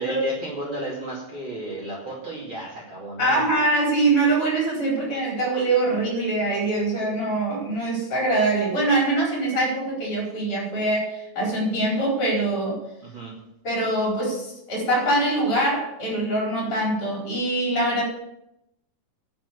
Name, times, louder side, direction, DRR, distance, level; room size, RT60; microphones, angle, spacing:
voice 1, 0.0-3.4 13.0-13.3, right 2 dB, 35° right, -3 dB, 2.9 m, -33 dB
voice 2, 3.2-12.8 13.6-18.0, right 2 dB, 35° left, -3 dB, 5.2 m, -23 dB
11.0 x 7.1 x 8.3 m, 0.83 s
omnidirectional pair, 4.3 m